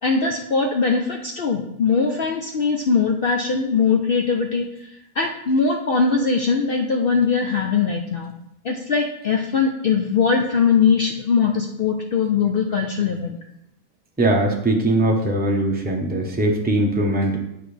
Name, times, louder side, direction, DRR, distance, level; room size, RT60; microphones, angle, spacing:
voice 1, 0.0-4.7 5.2-8.3 8.6-13.4, left 5 dB, 70° left, 2 dB, 0.5 m, -21 dB
voice 2, 14.2-17.4, right 1 dB, 10° right, 0 dB, 0.7 m, -20 dB
9.1 x 4.9 x 3.3 m, 0.82 s
omnidirectional pair, 1.6 m